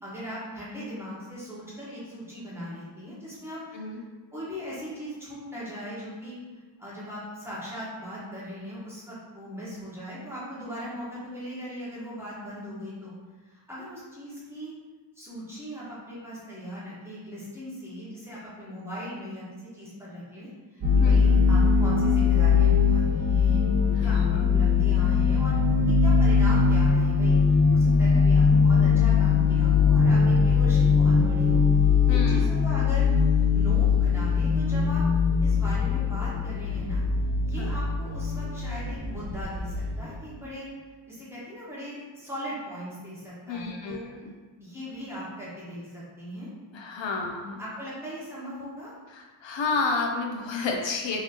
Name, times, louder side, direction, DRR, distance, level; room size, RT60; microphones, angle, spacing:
voice 1, 0.0-4.0 4.3-6.4 6.8-13.1 13.4-14.7 15.1-23.6 24.0-31.6 32.1-33.1 33.5-35.0 35.4-37.0 37.4-40.7 41.1-44.1 44.6-46.5 47.2-48.9, equal, 5° right, -9 dB, 1.2 m, -39 dB
sound 1, 20.8-40.2, left 5 dB, 50° right, 1.2 m, -21 dB
voice 2, 23.9-24.4 32.1-32.4 37.6-37.7 43.5-44.3 46.7-47.4 49.1-51.2, left 4 dB, 70° left, 1 dB, 0.5 m, -31 dB
3.9 x 2.9 x 2.8 m, 1.3 s
wide cardioid pair, 135°, 46 cm